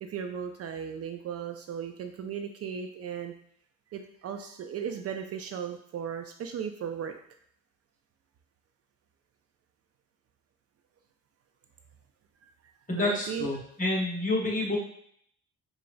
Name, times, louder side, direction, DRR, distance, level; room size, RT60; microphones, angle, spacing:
voice 1, 0.0-3.3 3.9-7.1 12.9-13.5, right 7 dB, 55° right, 6 dB, 0.4 m, -36 dB
voice 2, 12.9-14.8, left 2 dB, 25° left, -3 dB, 1.4 m, -28 dB
4.9 x 2.4 x 2.5 m, 0.66 s
cardioid pair, 90°, 30 cm